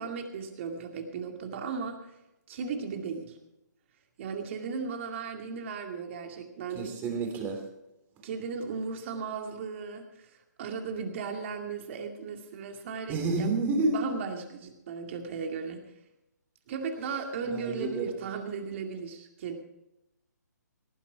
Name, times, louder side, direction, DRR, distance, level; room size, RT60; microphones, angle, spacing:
voice 1, 0.0-2.2 2.5-3.4 4.2-6.9 8.2-15.8 16.7-19.6, right 5 dB, 40° right, 5 dB, 2.3 m, -36 dB
voice 2, 6.7-7.6 13.1-14.0 17.5-18.1, right 3 dB, 20° right, 4 dB, 3.1 m, -29 dB
18.0 x 10.0 x 4.7 m, 0.90 s
hypercardioid pair, 145°, 10 cm